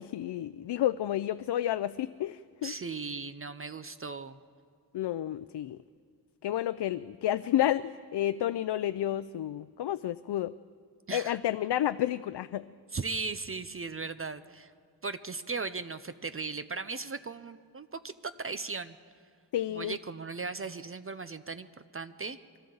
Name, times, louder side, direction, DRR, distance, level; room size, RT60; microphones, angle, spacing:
voice 1, 0.0-2.7 4.9-5.8 6.4-10.5 11.1-12.7 19.5-19.9, left 12 dB, 70° left, 13 dB, 0.5 m, -30 dB
voice 2, 2.6-4.4 11.1-11.4 12.9-14.7 15.0-19.0 19.7-21.7 21.9-22.4, right 4 dB, 30° right, 12 dB, 0.6 m, -37 dB
27.0 x 24.0 x 3.9 m, 2.1 s
wide cardioid pair, 95°, 42 cm